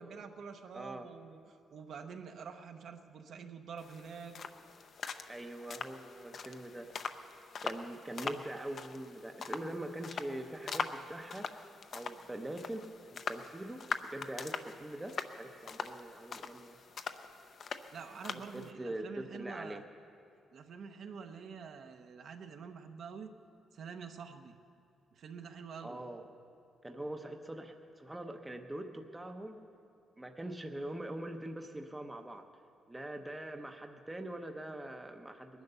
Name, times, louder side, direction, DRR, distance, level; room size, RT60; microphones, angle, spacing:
voice 1, 0.0-4.4 17.9-19.8 20.5-23.3 23.7-24.6 25.1-26.0 35.5-35.6, right 6 dB, 55° right, 6 dB, 0.9 m, -47 dB
voice 2, 0.7-1.1 5.3-6.9 7.6-11.6 11.9-16.8 18.3-19.8 25.8-26.2 26.8-29.7 30.2-32.4 32.9-35.6, right 1 dB, 10° right, 5 dB, 0.7 m, -43 dB
sound 1, 3.8-18.7, left 5 dB, 45° left, 0.6 m, -43 dB
20.0 x 10.5 x 6.7 m, 2.4 s
cardioid pair, 165°, 0 cm